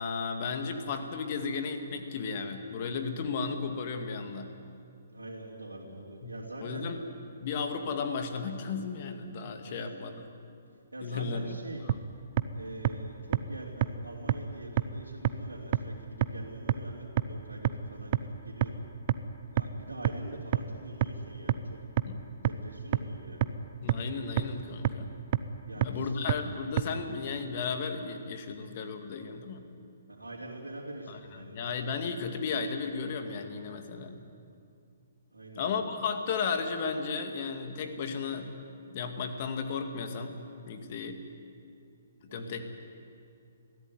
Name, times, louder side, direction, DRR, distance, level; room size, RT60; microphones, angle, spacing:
voice 1, 0.0-4.5 6.2-6.3 6.6-7.0 7.4-10.1 11.0-11.4 11.9-12.0 22.0-22.4 23.8-25.1 25.8-29.6 31.1-34.2 35.6-38.6 38.9-40.3 40.7-41.2 42.3-42.7, left 5 dB, 40° left, 6 dB, 2.1 m, -34 dB
voice 2, 5.1-6.9 9.6-10.0 10.9-11.8 12.5-18.9 19.5-21.8 22.4-23.5 25.7-26.1 30.1-31.6 35.3-35.6 42.2-42.6, right 2 dB, 75° right, -5 dB, 3.4 m, -44 dB
sound 1, 11.9-12.0 12.4-12.5 12.8-12.9 13.3-13.4 13.8-13.9 14.3-14.4 14.8-14.9 15.2-15.3 15.7-15.8 16.2-16.3 16.7-16.8 17.2-17.3 17.6-17.7 18.1-18.2 18.6-18.7 19.1-19.2 19.6-19.7 20.0-20.1 20.5-20.6 21.0-21.1 21.5-21.6 22.0-22.1 22.4-22.5 22.9-23.0 23.4-23.5 23.9-24.0 24.4-24.5 24.8-24.9 25.3-25.4 25.8-25.9 26.3-26.4 26.8-26.9, right 13 dB, 40° right, 0.7 m, -24 dB
22.0 x 15.0 x 9.7 m, 2.5 s
figure-of-eight pair, 125°, 0 cm